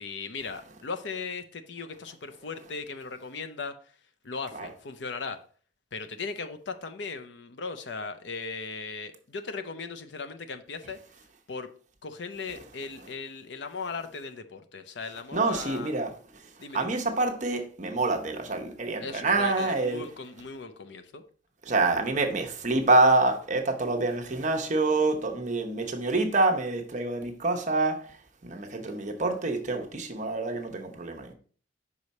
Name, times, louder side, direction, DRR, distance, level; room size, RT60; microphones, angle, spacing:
voice 1, 0.0-3.8 4.2-5.4 5.9-11.0 11.5-11.7 12.0-15.9 16.6-17.0 19.0-21.2, left 4 dB, 70° left, 0.6 m, -38 dB
voice 2, 15.3-16.1 16.7-20.0 21.7-28.1 28.4-31.3, right 2 dB, 40° right, 0.9 m, -26 dB
5.5 x 4.8 x 4.1 m
head